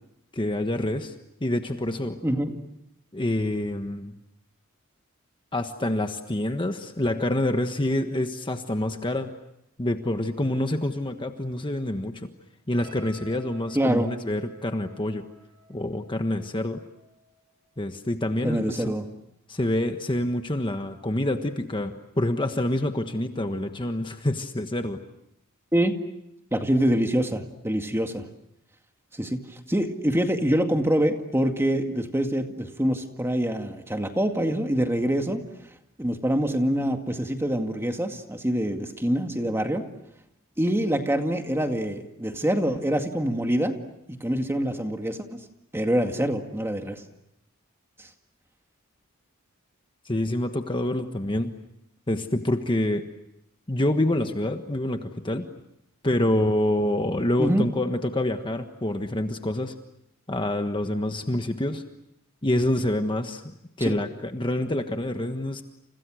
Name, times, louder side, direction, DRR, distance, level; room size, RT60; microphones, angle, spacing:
voice 1, 0.3-1.1 1.4-2.2 3.1-4.2 5.5-9.3 9.8-12.3 12.7-15.3 15.7-16.8 17.8-18.9 19.5-25.0 50.0-51.6 52.1-53.1 53.7-55.5 56.0-59.7 60.3-61.8 62.4-65.6, left 1 dB, 25° left, 6 dB, 1.4 m, -27 dB
voice 2, 2.2-2.6 13.7-14.1 18.4-19.1 25.7-26.0 26.5-28.3 29.1-29.4 29.7-35.4 36.0-39.9 40.6-43.8 44.1-45.4 45.7-47.0 57.4-57.7 63.8-64.0, equal, 10° right, 5 dB, 2.1 m, -25 dB
sound 1, 12.7-18.1 18.4-18.7, right 1 dB, 75° right, 6.0 m, -53 dB
30.0 x 29.5 x 6.4 m, 0.82 s
head